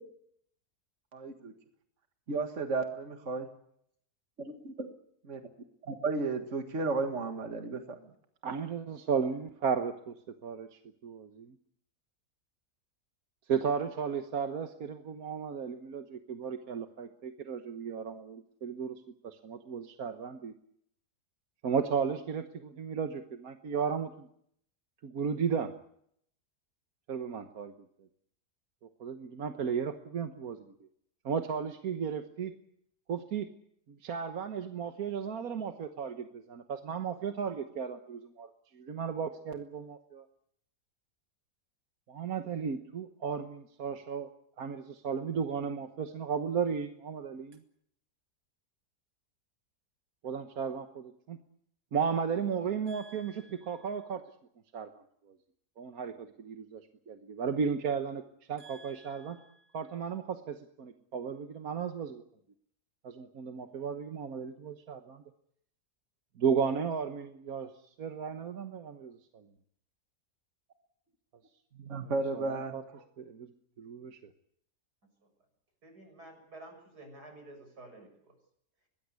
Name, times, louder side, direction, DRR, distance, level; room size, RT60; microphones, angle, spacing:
voice 1, 1.1-1.5 2.3-3.4 5.3-5.4 5.8-8.0 52.9-53.2 58.6-58.9 71.7-73.0, right 3 dB, 50° right, 6 dB, 2.0 m, -34 dB
voice 2, 8.4-10.1 10.4-10.7 11.0-11.5 13.5-20.5 21.6-24.3 25.0-25.7 27.1-27.7 29.0-30.6 31.2-32.5 33.1-33.5 33.9-40.2 42.1-44.3 44.6-47.6 50.2-51.4 51.9-54.2 54.7-55.0 55.8-58.2 58.5-59.4 59.7-62.2 63.0-65.2 66.4-67.7 68.0-69.5 71.9-72.8 73.2-73.5 73.8-74.3, right 6 dB, 65° right, 7 dB, 1.6 m, -34 dB
voice 3, 75.8-78.1, right 2 dB, 90° right, 5 dB, 7.5 m, -50 dB
23.0 x 19.5 x 8.2 m, 0.69 s
omnidirectional pair, 1.7 m